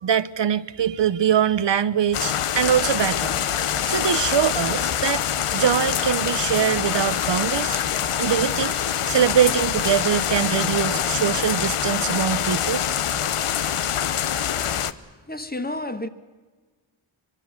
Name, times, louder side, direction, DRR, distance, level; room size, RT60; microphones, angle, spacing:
voice 1, 0.0-3.4 3.9-5.2 5.5-7.8 8.2-8.8 9.1-12.8, right 9 dB, 60° right, 0.8 m, -23 dB
sound 1, 0.9-5.5, left 2 dB, 55° left, 4.1 m, -51 dB
sound 2, 2.1-14.9, left 9 dB, 85° left, 1.0 m, -25 dB
voice 2, 15.3-16.1, left 1 dB, 20° left, 1.5 m, -31 dB
24.0 x 23.5 x 7.4 m
wide cardioid pair, 100°, 50 cm